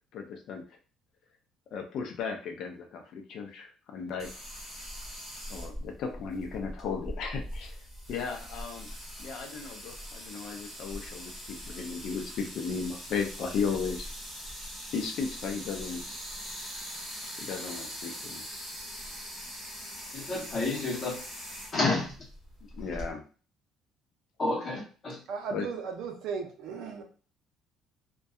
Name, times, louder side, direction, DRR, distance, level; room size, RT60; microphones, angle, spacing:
voice 1, 0.1-0.6 1.7-4.3 5.5-7.8 8.1-8.9 9.2-14.1 14.9-16.0 17.4-18.4 22.7-23.2 25.5-25.7, left 5 dB, 55° left, 4 dB, 0.4 m, -35 dB
sound 1, 4.2-23.1, equal, 10° left, 1.3 m, -42 dB
voice 2, 20.1-21.1 21.7-22.1 24.4-25.2, left 2 dB, 30° left, -1 dB, 0.8 m, -29 dB
voice 3, 25.3-27.0, right 5 dB, 65° right, 4 dB, 0.5 m, -36 dB
2.6 x 2.2 x 2.3 m, 0.37 s
cardioid pair, 170°, 0 cm